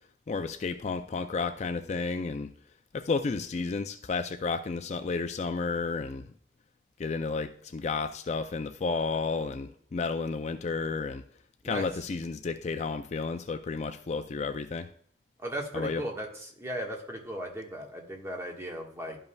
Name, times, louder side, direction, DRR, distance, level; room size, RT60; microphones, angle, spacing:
voice 1, 0.3-2.5 2.9-6.3 7.0-11.2 11.6-14.9 15.7-16.1, left 4 dB, 40° left, 8 dB, 0.3 m, -32 dB
voice 2, 15.4-16.3 16.6-19.2, right 1 dB, 15° right, 0 dB, 1.3 m, -36 dB
12.0 x 5.5 x 2.2 m, 0.62 s
head